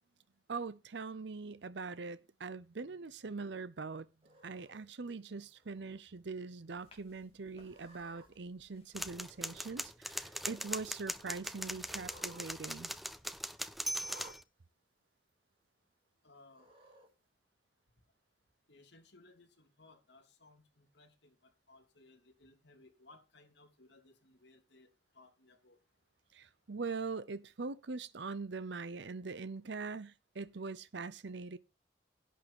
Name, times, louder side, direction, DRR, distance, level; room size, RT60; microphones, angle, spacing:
voice 1, 0.5-4.1 4.4-12.9 26.3-31.6, right 4 dB, 70° right, 0.7 m, -42 dB
Cat, 4.2-4.8 5.5-6.0 6.4-6.5 7.5-8.3 9.3-9.9 10.2-10.8 11.8-12.5 12.8-12.9 14.0-14.4 15.3-15.4 16.5-17.1, right 1 dB, 30° right, 5.4 m, -58 dB
sound 1, 6.7-9.7, left 2 dB, 30° left, 3.2 m, -66 dB
sound 2, 9.0-14.4, equal, ahead, 0.5 m, -40 dB
voice 2, 16.2-16.7 18.7-24.9 25.1-25.8, left 2 dB, 70° left, 3.2 m, -62 dB
11.0 x 9.4 x 5.3 m
head